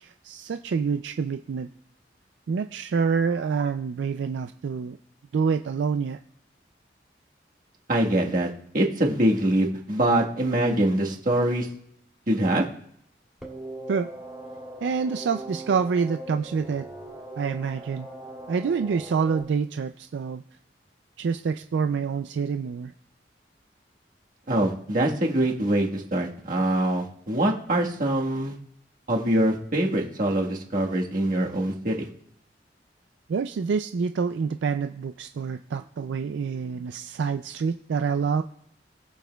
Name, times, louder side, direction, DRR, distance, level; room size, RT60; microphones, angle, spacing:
voice 1, 0.0-1.7 2.5-5.0 5.3-6.2 13.9-14.1 14.8-16.9 17.4-18.1 18.5-20.4 21.2-22.9 33.3-38.4, right 5 dB, 75° right, 8 dB, 0.4 m, -27 dB
voice 2, 7.9-11.7 12.3-12.6 24.5-28.6 29.1-32.1, right 1 dB, 50° right, -1 dB, 1.4 m, -24 dB
sound 1, 13.4-19.4, right 1 dB, 5° right, 2.5 m, -40 dB
20.0 x 7.1 x 2.3 m, 0.72 s
head